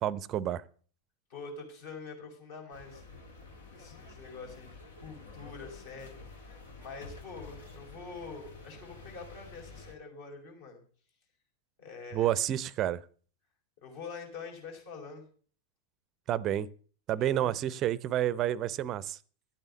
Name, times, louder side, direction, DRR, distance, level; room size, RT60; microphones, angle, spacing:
voice 1, 0.0-0.6 12.1-13.0 16.3-16.7 17.1-19.2, right 12 dB, 35° right, 0.6 m, -29 dB
voice 2, 1.3-3.2 3.7-10.8 11.8-12.4 13.8-15.2 17.1-17.5, left 4 dB, 55° left, 5.1 m, -46 dB
sound 1, 2.7-9.9, left 3 dB, 70° left, 2.3 m, -49 dB
12.0 x 9.0 x 6.9 m
figure-of-eight pair, 90°, 0 cm